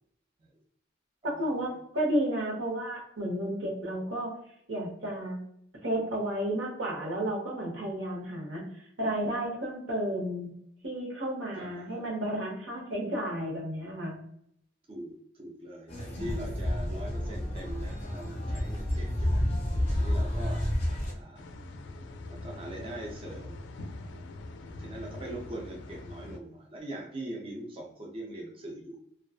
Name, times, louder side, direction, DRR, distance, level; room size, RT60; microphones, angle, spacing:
voice 1, 1.4-4.4 4.7-5.4 5.8-10.5 10.8-14.2, right 1 dB, 85° right, -1 dB, 0.9 m, -32 dB
voice 2, 11.6-12.0 14.9-19.4 19.9-20.6 21.1-21.4 22.3-23.6 24.7-29.0, right 1 dB, 30° right, -1 dB, 0.4 m, -42 dB
sound 1, 15.9-21.1, left 1 dB, 30° left, 0.6 m, -30 dB
sound 2, 21.4-26.4, left 2 dB, 70° left, 0.3 m, -43 dB
2.5 x 2.3 x 2.3 m, 0.69 s
head